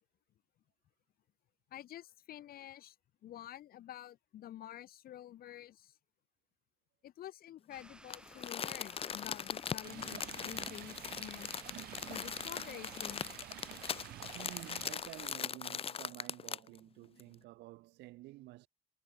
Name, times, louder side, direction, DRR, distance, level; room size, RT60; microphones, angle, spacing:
voice 1, 1.7-2.9 3.2-6.0 7.0-11.6 12.1-13.4, left 12 dB, 60° left, 1.6 m, -49 dB
sound 1, 7.7-15.4, right 1 dB, 5° right, 1.5 m, -57 dB
Crumpling crinkling, 8.1-16.8 17.2-17.3, left 7 dB, 35° left, 0.8 m, -40 dB
Stream, 9.8-14.9, right 15 dB, 65° right, 0.8 m, -50 dB
voice 2, 14.3-18.7, right 19 dB, 85° right, 5.7 m, -51 dB
cardioid pair, 110°, 17 cm